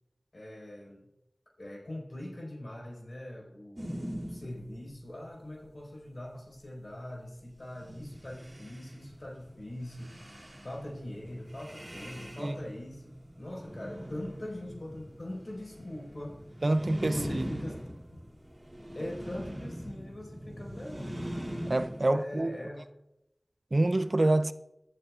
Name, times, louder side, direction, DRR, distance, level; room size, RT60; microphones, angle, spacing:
voice 1, 0.3-1.0 1.6-3.8 4.2-16.4 17.0-17.7 18.9-21.3 22.1-22.8, left 1 dB, 60° left, 4.7 m, -42 dB
sound 1, 3.8-5.0 7.6-22.0, equal, 30° right, 3.0 m, -42 dB
voice 2, 16.6-17.6 21.7-22.6 23.7-24.5, right 2 dB, 55° right, 0.6 m, -27 dB
18.5 x 11.0 x 2.5 m
wide cardioid pair, 45°, 0 cm